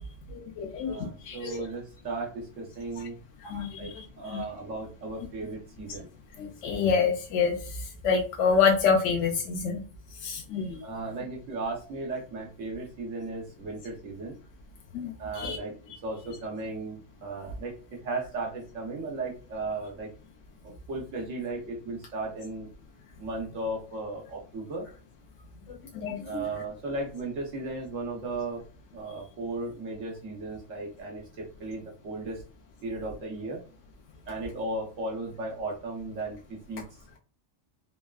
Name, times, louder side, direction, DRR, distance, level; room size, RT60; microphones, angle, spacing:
voice 1, 0.3-1.6 3.4-3.9 4.3-4.4 6.4-7.6 8.0-9.8 10.2-10.8 14.9-15.1 15.4-15.6 25.9-26.4, left 5 dB, 75° left, 0 dB, 0.9 m, -27 dB
voice 2, 0.8-3.2 3.7-3.9 4.2-6.1 10.8-14.4 15.2-15.7 16.0-20.1 20.6-22.7 23.2-24.9 26.2-28.6 28.9-32.4 32.8-33.6 34.3-36.8, right 2 dB, 90° right, 0 dB, 1.3 m, -36 dB
3.4 x 2.3 x 2.3 m, 0.36 s
omnidirectional pair, 1.3 m